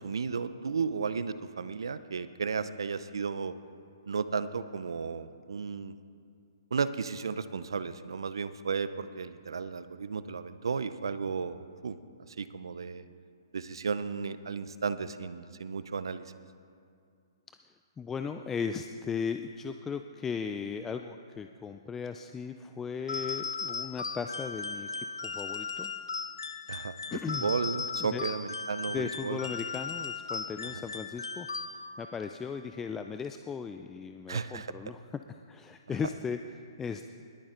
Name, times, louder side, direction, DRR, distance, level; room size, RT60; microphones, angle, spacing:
voice 1, 0.0-3.5 4.1-5.9 6.7-12.0 12.4-13.0 13.5-16.2 26.7-27.0 27.3-29.4 34.3-34.7, right 5 dB, 75° right, 13 dB, 0.7 m, -34 dB
voice 2, 18.0-25.9 27.1-27.5 28.0-28.3 28.9-37.0, left 6 dB, 15° left, 7 dB, 0.4 m, -37 dB
sound 1, 23.1-32.1, left 5 dB, 80° left, 0.9 m, -37 dB
20.5 x 10.0 x 3.9 m, 2.4 s
hypercardioid pair, 130°, 2 cm